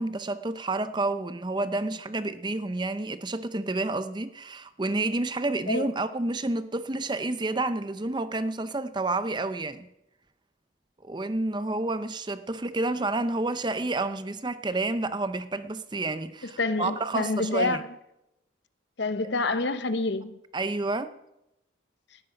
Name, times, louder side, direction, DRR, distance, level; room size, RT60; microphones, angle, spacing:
voice 1, 0.0-9.9 11.0-17.8 20.5-21.1, right 2 dB, 25° right, 0.6 m, -29 dB
voice 2, 16.4-17.8 19.0-20.4, left 3 dB, 60° left, 0.8 m, -27 dB
18.0 x 11.5 x 5.2 m
head